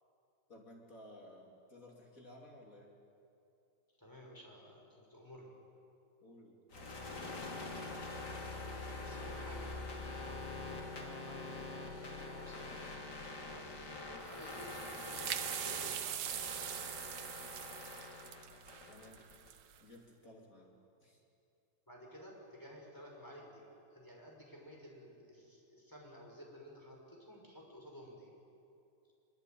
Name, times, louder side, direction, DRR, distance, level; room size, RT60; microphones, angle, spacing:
voice 1, 0.5-2.9 6.2-7.0 14.0-14.3 18.9-19.3 19.8-20.7 21.0-21.2, left 1 dB, 50° left, -1 dB, 3.3 m, -56 dB
voice 2, 4.0-5.6 8.8-9.7 10.0-11.8 12.3-12.8 13.5-13.7 14.3-16.9 21.9-28.3, equal, 10° left, -1 dB, 5.6 m, -54 dB
sound 1, 6.7-19.5, left 2 dB, 65° left, 3.4 m, -45 dB
sound 2, 14.3-19.8, right 10 dB, 80° right, 1.6 m, -42 dB
24.5 x 23.0 x 9.3 m, 2.7 s
omnidirectional pair, 1.9 m